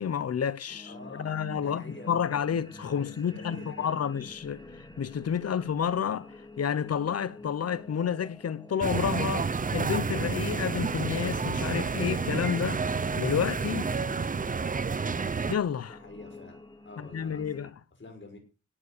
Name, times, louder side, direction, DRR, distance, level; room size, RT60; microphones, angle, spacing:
voice 1, 0.0-4.6 5.0-12.8 13.2-13.9 15.5-16.0 17.0-17.7, left 8 dB, 55° left, 0.8 m, -30 dB
sound 1, 0.7-17.7, left 2 dB, 15° left, 2.0 m, -47 dB
voice 2, 0.8-2.1 3.0-3.9 15.9-16.6 16.8-17.7 18.0-18.4, left 2 dB, 40° left, 5.5 m, -48 dB
sound 2, 8.8-15.6, right 5 dB, 25° right, 0.6 m, -30 dB
17.5 x 7.0 x 6.7 m
wide cardioid pair, 145°, 30 cm